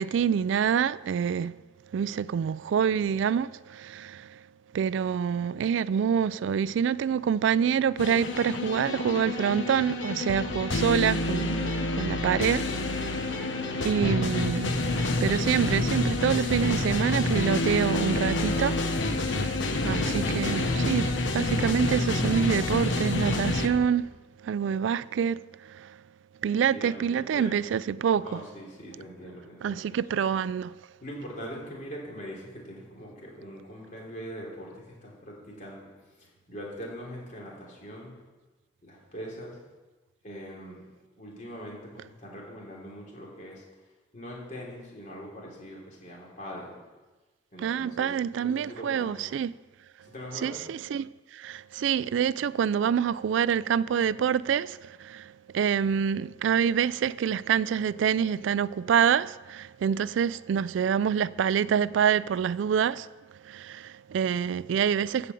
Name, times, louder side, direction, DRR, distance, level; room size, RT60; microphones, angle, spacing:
voice 1, 0.0-1.6 1.9-4.3 4.7-13.2 13.8-14.8 15.2-18.8 19.0-24.1 24.4-25.4 25.7-25.9 26.4-28.4 29.6-30.7 47.6-49.5 50.4-63.1 63.5-65.3, right 7 dB, 85° right, 0.3 m, -26 dB
sound 1, 8.0-23.7, left 2 dB, 85° left, 1.1 m, -28 dB
voice 2, 26.5-27.6 28.2-30.2 31.0-35.9 36.2-38.2 38.8-39.6 40.2-40.8 41.2-43.6 44.1-46.8 47.5-49.3 50.0-50.5, equal, 40° left, 3.4 m, -42 dB
14.5 x 5.1 x 7.7 m
head